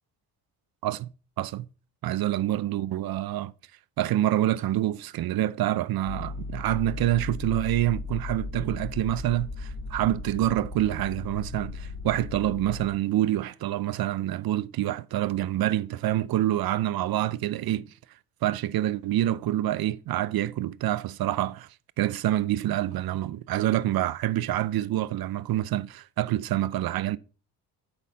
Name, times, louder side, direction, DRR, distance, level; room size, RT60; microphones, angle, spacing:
voice 1, 2.0-3.5 4.0-17.9 18.4-21.7 22.0-27.2, right 13 dB, 60° right, 0.6 m, -27 dB
sound 1, 6.0-12.9, left 3 dB, 45° left, 3.6 m, -36 dB
8.1 x 5.9 x 5.2 m
supercardioid pair, 80°, 41 cm